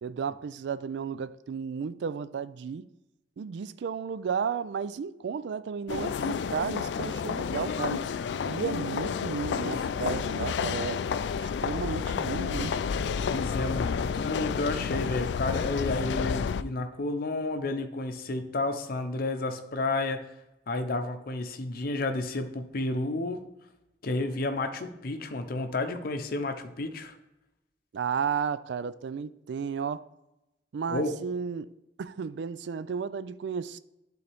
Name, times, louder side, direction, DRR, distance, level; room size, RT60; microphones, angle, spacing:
voice 1, 0.0-2.9 3.4-8.0 8.5-11.0 11.4-12.7 27.9-30.0 30.7-31.7 32.0-33.8, right 6 dB, 75° right, 0.3 m, -33 dB
sound 1, 5.9-16.6, left 6 dB, 75° left, 0.3 m, -30 dB
voice 2, 13.2-20.3 20.7-23.4 24.0-27.1 30.9-31.2, left 2 dB, 55° left, 0.7 m, -31 dB
11.0 x 3.9 x 3.5 m
head